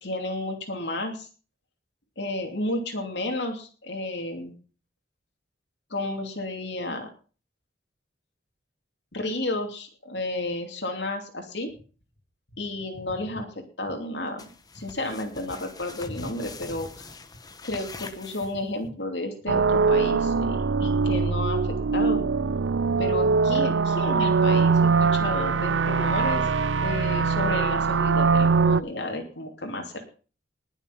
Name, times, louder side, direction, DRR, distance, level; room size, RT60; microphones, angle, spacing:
voice 1, 0.0-1.3 2.2-4.6 5.9-7.1 9.1-11.7 12.6-13.5 13.8-14.5 14.7-16.9 17.6-22.2 23.0-30.0, left 1 dB, 65° left, 3 dB, 2.8 m, -32 dB
sound 1, 14.4-18.9, left 3 dB, 20° left, 1.2 m, -44 dB
sound 2, 19.5-28.8, right 5 dB, 80° right, 0.5 m, -22 dB
20.0 x 7.1 x 5.8 m, 0.39 s
head